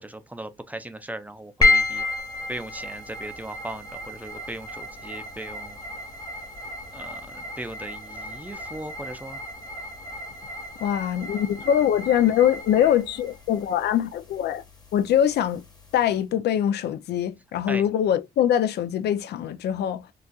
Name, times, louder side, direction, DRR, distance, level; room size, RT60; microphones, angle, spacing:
voice 1, 0.0-2.0 2.5-5.8 6.9-9.4 17.7-17.8, right 1 dB, 10° right, 0.4 m, -38 dB
sound 1, 1.6-16.1, left 3 dB, 25° left, 1.1 m, -31 dB
voice 2, 10.8-14.6 14.9-15.6 15.9-20.1, left 10 dB, 80° left, 0.4 m, -23 dB
4.0 x 2.4 x 2.2 m
cardioid pair, 90°, 17 cm